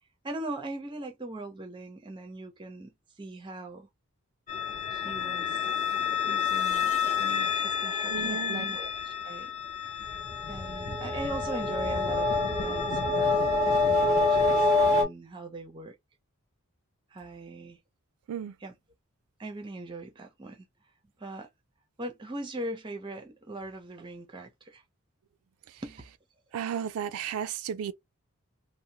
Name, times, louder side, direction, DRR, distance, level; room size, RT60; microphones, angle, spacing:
voice 1, 0.2-3.9 4.9-5.7 6.2-6.9 7.2-9.5 10.5-15.9 17.1-17.8 18.6-18.7 19.4-20.7 21.2-21.5 22.0-24.8 25.8-26.0, right 2 dB, 20° right, 0.5 m, -40 dB
sound 1, 4.5-15.0, left 4 dB, 35° left, 0.7 m, -27 dB
voice 2, 8.1-8.7 18.3-18.5 25.7-25.8 26.5-27.9, right 8 dB, 80° right, 0.3 m, -34 dB
2.7 x 2.1 x 2.7 m
head